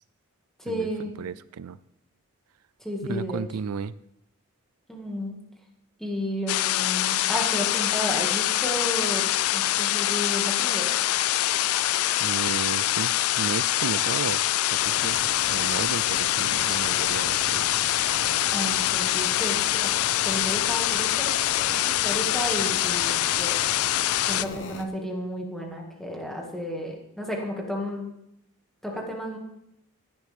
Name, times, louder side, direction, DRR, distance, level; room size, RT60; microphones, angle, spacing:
voice 1, 0.6-1.1 2.8-3.4 4.9-5.4 6.0-9.3 9.5-10.9 18.5-20.0 20.2-23.6 24.3-28.1 28.8-29.4, equal, ahead, -1 dB, 2.1 m, -32 dB
voice 2, 1.2-1.8 3.1-3.9 12.2-14.4 14.7-15.2 15.5-17.7, right 6 dB, 90° right, 16 dB, 0.4 m, -33 dB
sound 1, 6.5-24.5, left 14 dB, 75° left, 0.4 m, -24 dB
sound 2, 14.8-24.8, left 3 dB, 55° left, 1.0 m, -39 dB
16.0 x 11.0 x 3.6 m, 0.79 s
head